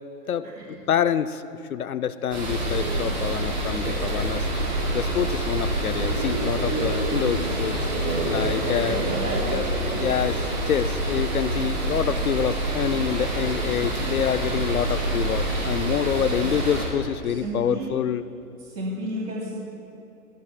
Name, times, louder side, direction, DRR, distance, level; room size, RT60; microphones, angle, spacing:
voice 1, 0.3-1.4 1.7-7.8 8.2-9.0 9.5-9.6 10.0-18.3, left 9 dB, 65° left, 13 dB, 0.6 m, -27 dB
sound 1, 2.3-16.9, right 1 dB, 30° right, 2.6 m, -26 dB
voice 2, 8.0-9.5 16.2-16.3 17.2-18.0 18.6-19.6, right 2 dB, 75° right, -3 dB, 2.8 m, -32 dB
21.5 x 16.0 x 2.2 m, 2.9 s
hypercardioid pair, 180°, 48 cm